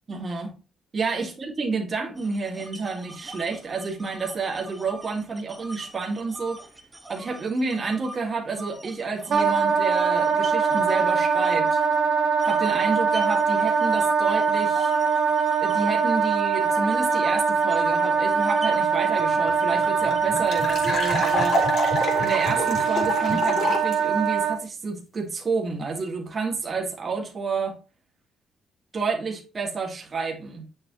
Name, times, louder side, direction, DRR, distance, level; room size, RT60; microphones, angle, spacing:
voice 1, 0.1-0.5 0.9-6.6 7.1-11.8 12.4-14.9 15.6-21.6 22.2-27.8 28.9-30.7, right 4 dB, 40° right, 2.2 m, -29 dB
sound 1, 2.2-8.2 8.6-12.0 12.4-21.8, right 1 dB, 15° right, 1.6 m, -42 dB
Wind instrument woodwind instrument, 9.3-24.6, right 6 dB, 60° right, 1.3 m, -23 dB
sound 2, 19.2-19.3 19.5-19.6 19.8-23.9, left 2 dB, 65° left, 4.0 m, -27 dB
8.7 x 7.1 x 3.0 m
cardioid pair, 90°, 0 cm